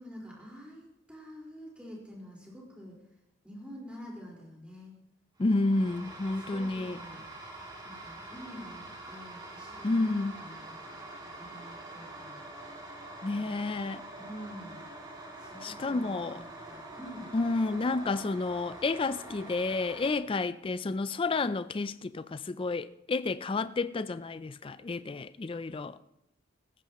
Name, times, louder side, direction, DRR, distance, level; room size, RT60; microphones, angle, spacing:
voice 1, 0.0-3.0 3.4-4.9 5.8-7.2 7.8-11.0 11.3-12.5 14.2-14.8 15.4-17.3, equal, 5° right, 4.5 m, -47 dB
voice 2, 5.4-7.0 9.8-10.3 13.2-14.0 15.6-16.4 17.3-26.0, left 3 dB, 25° left, 0.4 m, -30 dB
sound 1, 5.4-20.1, right 2 dB, 20° right, 2.8 m, -45 dB
18.0 x 15.0 x 3.0 m
head